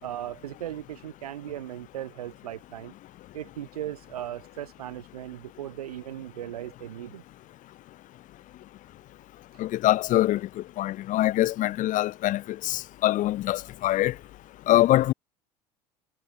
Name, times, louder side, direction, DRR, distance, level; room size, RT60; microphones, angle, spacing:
voice 1, 0.0-2.9 3.3-7.2, right 12 dB, 70° right, 2.5 m, -37 dB
voice 2, 9.6-10.4 10.8-14.1 14.7-15.1, left 15 dB, 40° left, 1.0 m, -24 dB
figure-of-eight pair, 70°, 20 cm